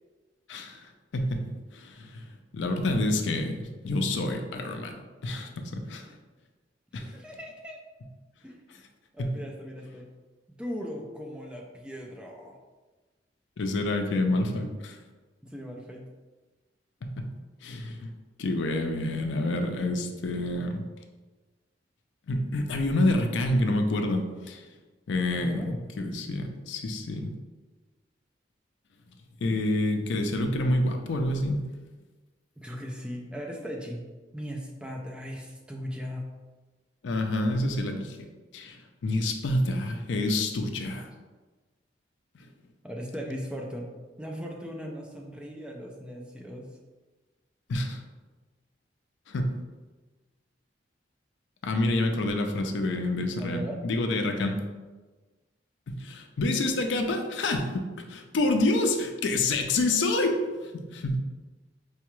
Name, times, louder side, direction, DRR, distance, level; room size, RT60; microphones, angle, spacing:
voice 1, 0.5-0.8 1.1-1.5 1.7-2.1 2.5-4.9 5.2-6.1 6.9-7.1 9.2-9.3 13.6-15.0 17.0-17.3 17.6-18.1 18.4-20.8 22.3-24.6 25.1-27.3 29.4-31.6 37.0-38.2 38.5-38.8 39.0-41.1 47.7-48.0 49.3-49.5 51.6-54.6 55.9-60.4 60.7-61.2, left 2 dB, 75° left, 5 dB, 0.4 m, -28 dB
voice 2, 7.0-7.8 8.4-8.6 9.1-10.1 10.5-12.6 15.4-16.1 25.3-25.7 32.6-34.0 34.3-36.3 42.8-46.7 53.4-53.8, equal, 5° right, 0 dB, 0.4 m, -38 dB
4.7 x 2.3 x 3.0 m, 1.3 s
head